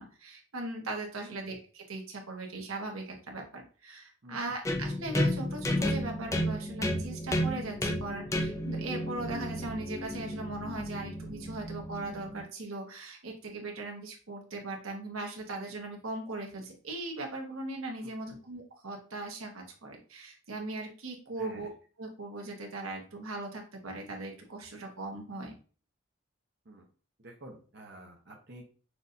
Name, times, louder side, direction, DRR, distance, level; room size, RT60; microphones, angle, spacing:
voice 1, 0.0-21.7 22.0-25.5, right 2 dB, 85° right, 2 dB, 1.1 m, -39 dB
voice 2, 4.2-4.5 18.0-18.4 21.4-21.7 26.6-26.9 27.2-28.6, right 1 dB, 55° right, -1 dB, 0.8 m, -50 dB
sound 1, 4.6-12.4, equal, 15° left, 0.4 m, -32 dB
6.1 x 2.5 x 2.6 m, 0.38 s
head